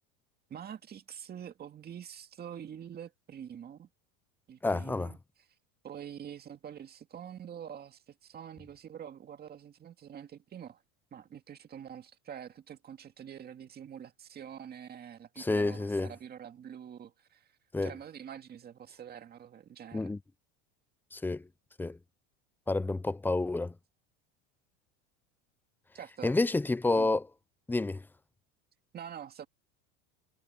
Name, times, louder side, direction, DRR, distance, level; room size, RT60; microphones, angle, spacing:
voice 1, 0.5-3.9 4.5-5.5 5.8-10.8 11.1-17.5 17.8-20.1 25.9-26.3 26.9-27.1 28.9-29.5, right 9 dB, 25° right, 2.2 m, -46 dB
voice 2, 4.6-5.1 15.4-16.1 17.7-17.9 19.9-20.2 21.1-21.4 21.8-22.0 22.7-23.7 26.2-27.2 27.7-28.0, left 2 dB, 5° left, 0.6 m, -29 dB
supercardioid pair, 135°, 35 cm